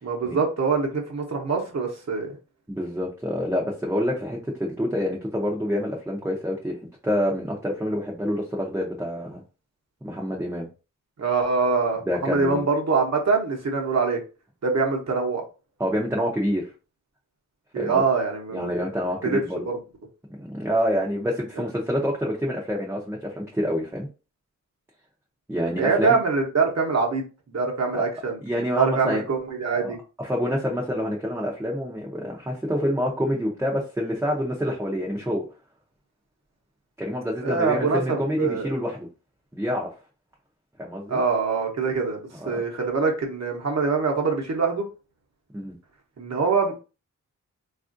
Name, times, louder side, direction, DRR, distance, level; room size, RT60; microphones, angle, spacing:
voice 1, 0.0-2.3 11.2-14.2 14.6-15.4 17.7-18.9 19.2-19.4 19.6-19.8 25.8-28.4 28.7-30.0 37.4-38.7 41.1-44.8 46.2-46.8, right 4 dB, 55° right, 1 dB, 0.8 m, -24 dB
voice 2, 2.7-6.8 7.0-9.4 10.0-10.7 12.0-12.7 15.8-16.7 17.8-18.0 18.5-19.6 20.4-24.1 25.5-26.2 27.9-28.0 28.4-29.2 29.8-35.4 37.0-39.1 39.5-39.9 40.8-41.2 42.4-42.6 45.5-45.7, equal, 5° right, -2 dB, 0.6 m, -27 dB
3.4 x 2.4 x 2.5 m, 0.32 s
wide cardioid pair, 100°, 32 cm